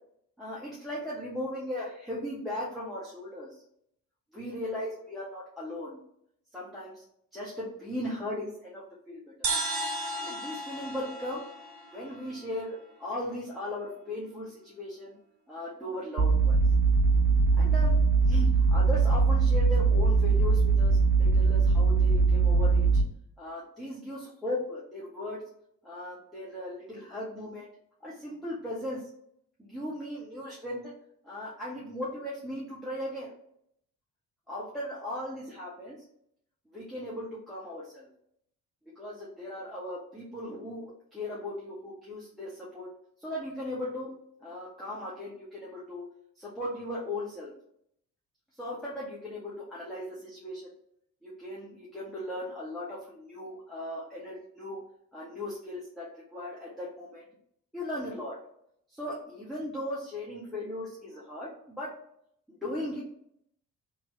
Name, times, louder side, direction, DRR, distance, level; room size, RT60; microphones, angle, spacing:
voice 1, 0.4-3.6 4.3-6.0 6.5-7.0 7.3-9.5 10.1-11.4 11.9-15.1 15.5-16.6 17.5-23.0 23.4-25.4 25.8-27.7 28.0-29.1 29.6-30.9 31.2-33.3 34.5-36.0 36.7-38.1 39.0-42.9 43.2-44.1 44.4-46.1 46.4-47.5 48.6-50.7 51.2-54.8 55.1-57.2 57.7-58.4 58.9-62.0 62.6-63.0, left 1 dB, ahead, -8 dB, 1.0 m, -37 dB
sound 1, 9.4-13.0, right 2 dB, 40° right, 1.0 m, -35 dB
sound 2, 16.2-23.0, right 4 dB, 75° right, 0.5 m, -22 dB
3.1 x 2.7 x 3.1 m, 0.71 s
figure-of-eight pair, 40°, 47 cm